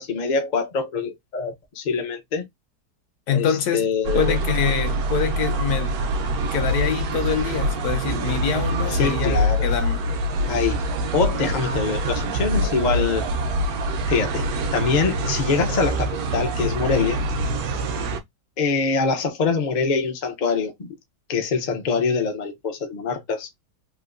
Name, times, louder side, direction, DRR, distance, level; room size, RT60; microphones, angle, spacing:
voice 1, 0.0-2.5 3.3-4.4 8.9-9.7 10.5-10.8 11.1-13.3 14.1-14.5 14.7-17.4 18.6-20.9 21.3-23.5, left 5 dB, 45° left, 0.6 m, -24 dB
voice 2, 3.3-3.9 4.1-6.0 6.5-10.0, left 7 dB, 70° left, 1.2 m, -25 dB
sound 1, 4.0-18.2, right 1 dB, 65° right, 1.1 m, -25 dB
3.5 x 2.7 x 2.5 m
omnidirectional pair, 1.8 m